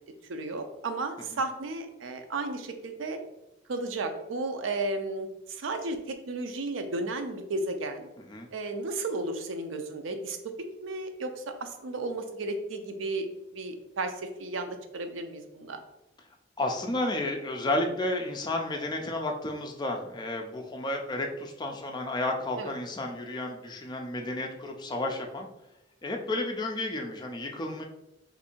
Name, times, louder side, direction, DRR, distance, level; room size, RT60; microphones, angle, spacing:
voice 1, 0.3-3.2 3.7-8.1 8.5-10.4 10.8-13.3 13.5-15.8 22.6-22.7, right 2 dB, 75° right, 7 dB, 0.5 m, -33 dB
voice 2, 8.2-8.5 16.6-25.5 26.0-27.8, left 1 dB, 20° left, 2 dB, 0.4 m, -32 dB
2.7 x 2.6 x 4.2 m, 0.91 s
head